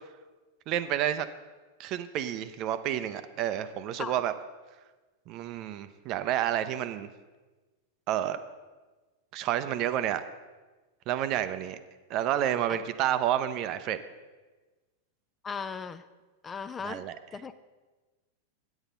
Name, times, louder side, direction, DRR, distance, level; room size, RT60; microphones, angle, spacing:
voice 1, 0.7-1.3 1.8-4.3 5.3-7.1 8.1-8.4 9.3-10.3 11.1-11.8 12.1-14.0 16.8-17.2, right 11 dB, 40° right, 12 dB, 0.5 m, -29 dB
voice 2, 15.4-16.0 16.4-17.0 17.3-17.6, left 5 dB, 20° left, 12 dB, 0.4 m, -37 dB
8.9 x 8.3 x 5.3 m, 1.3 s
figure-of-eight pair, 90°, 0 cm